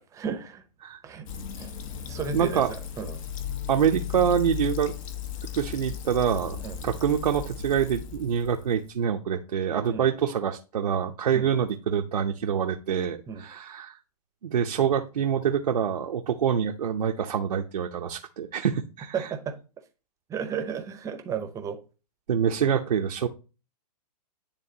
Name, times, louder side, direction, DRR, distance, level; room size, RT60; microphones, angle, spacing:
voice 1, 0.1-0.6 1.0-1.3 1.6-1.7 2.1-3.2 6.6-6.8 9.9-10.1 11.3-11.5 13.3-13.4 19.1-19.5 20.3-21.8, right 7 dB, 15° right, 7 dB, 0.7 m, -33 dB
Fill (with liquid), 1.3-8.9, left 8 dB, 55° left, 0.9 m, -36 dB
voice 2, 2.3-2.7 3.7-4.9 5.6-14.0 14.4-19.3 22.3-23.3, right 8 dB, 85° right, 3 dB, 0.7 m, -26 dB
9.8 x 3.5 x 2.7 m, 0.33 s
hypercardioid pair, 135°, 21 cm